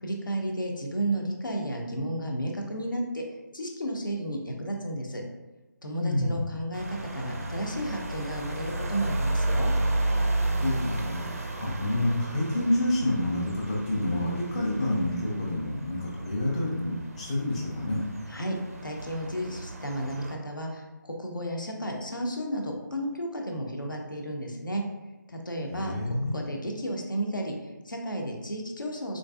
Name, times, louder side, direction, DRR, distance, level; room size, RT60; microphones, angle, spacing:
voice 1, 0.0-3.2 3.5-5.2 5.8-9.7 18.3-18.6 18.8-24.8 25.3-29.2, right 1 dB, 80° left, 1 dB, 0.7 m, -33 dB
voice 2, 6.0-6.5 10.6-18.0 25.7-26.4, left 1 dB, 20° left, -4 dB, 0.4 m, -28 dB
sound 1, 6.7-20.4, right 1 dB, 45° right, 0.4 m, -32 dB
3.8 x 2.6 x 2.3 m, 1.1 s
figure-of-eight pair, 155°, 11 cm